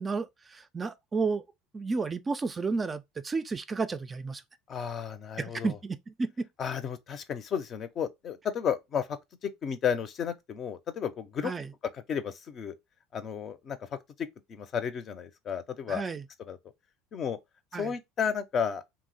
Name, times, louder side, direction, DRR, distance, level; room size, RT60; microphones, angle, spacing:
voice 1, 0.0-1.4 1.7-4.4 5.4-6.5 11.4-11.7 15.9-16.2 17.7-17.9, right 4 dB, 25° right, 0.3 m, -32 dB
voice 2, 4.7-5.8 6.6-11.5 11.9-12.7 13.1-13.8 14.2-16.0 16.5-16.6 17.1-17.4 17.7-18.8, left 7 dB, 45° left, 0.5 m, -33 dB
2.7 x 2.0 x 3.9 m
hypercardioid pair, 80°, 0 cm